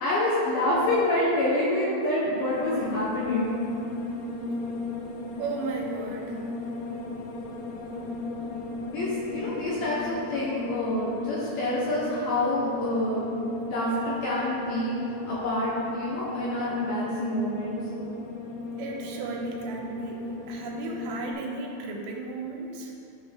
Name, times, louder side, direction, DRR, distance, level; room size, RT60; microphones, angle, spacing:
voice 1, 0.0-3.5 8.9-13.2 13.7-17.8, left 1 dB, 70° left, -7 dB, 2.4 m, -27 dB
sound 1, 2.5-21.3, left 2 dB, 85° left, 3.3 m, -36 dB
voice 2, 5.4-6.4 18.8-22.9, right 4 dB, 85° right, -1 dB, 3.6 m, -35 dB
12.0 x 6.1 x 3.5 m, 2.7 s
omnidirectional pair, 5.6 m